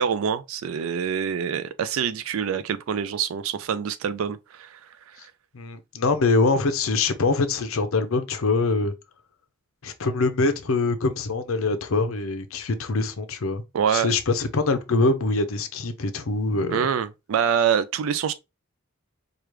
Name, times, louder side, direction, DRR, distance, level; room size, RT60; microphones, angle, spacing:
voice 1, 0.0-4.8 13.7-14.1 16.7-18.3, right 7 dB, 75° right, 0.4 m, -25 dB
voice 2, 5.5-8.9 9.8-13.6 13.9-16.9, left 3 dB, 80° left, 0.7 m, -24 dB
4.8 x 2.4 x 3.1 m
head